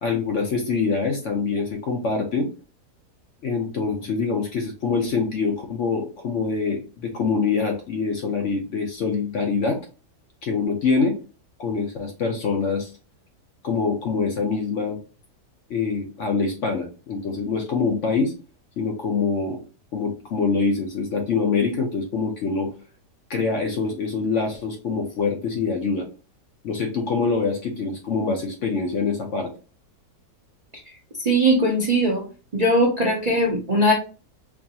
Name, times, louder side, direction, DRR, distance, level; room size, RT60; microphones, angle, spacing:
voice 1, 0.0-2.5 3.4-9.8 10.4-11.2 11.6-12.9 13.6-15.0 15.7-18.3 18.8-19.6 19.9-22.7 23.3-26.1 26.6-29.5, left 4 dB, 60° left, 2 dB, 0.8 m, -25 dB
voice 2, 31.2-32.2 32.5-33.9, right 1 dB, 45° right, -4 dB, 0.5 m, -19 dB
4.6 x 2.4 x 2.8 m, 0.35 s
omnidirectional pair, 1.7 m